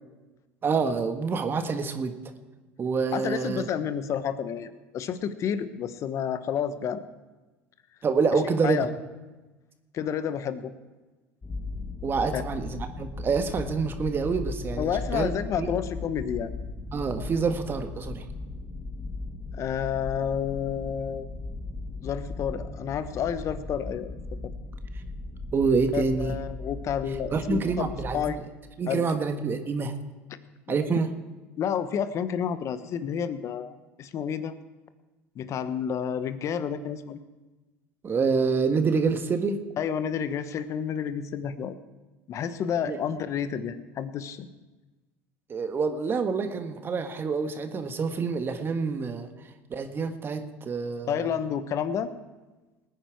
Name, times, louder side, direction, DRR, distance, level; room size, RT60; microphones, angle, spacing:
voice 1, 0.6-2.2 2.8-3.7 8.0-8.9 12.0-15.3 15.6-15.7 16.9-18.3 25.5-26.3 27.3-28.3 28.8-29.9 30.7-31.1 38.0-39.6 42.9-43.0 45.5-49.3 49.7-51.3, right 5 dB, 35° right, 7 dB, 1.4 m, -27 dB
voice 2, 3.1-7.0 8.6-8.9 9.9-10.7 12.3-12.4 14.8-16.5 19.5-21.3 22.0-24.1 25.9-27.8 28.1-28.4 28.9-29.2 30.7-31.0 31.6-34.5 35.4-37.2 39.8-41.8 42.3-44.5 51.1-52.1, left 8 dB, 50° left, 12 dB, 1.1 m, -30 dB
sound 1, 11.4-28.3, left 3 dB, 25° left, 1.6 m, -37 dB
19.5 x 9.7 x 4.7 m, 1.2 s
hypercardioid pair, 85°, 7 cm